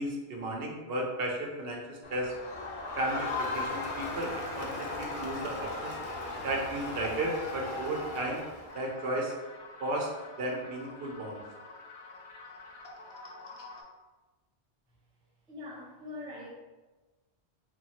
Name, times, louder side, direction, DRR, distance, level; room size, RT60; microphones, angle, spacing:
voice 1, 0.0-2.3 3.0-6.0 6.4-8.4 8.7-9.4 9.8-11.4, right 1 dB, 70° right, -1 dB, 0.7 m, -34 dB
Crowd, 2.0-8.9, left 3 dB, 55° left, 0.6 m, -37 dB
sound 1, 8.7-13.8, left 3 dB, 85° left, 0.9 m, -48 dB
voice 2, 15.5-16.5, left 2 dB, 10° right, -5 dB, 0.3 m, -42 dB
2.8 x 2.3 x 2.7 m, 1.2 s
omnidirectional pair, 1.1 m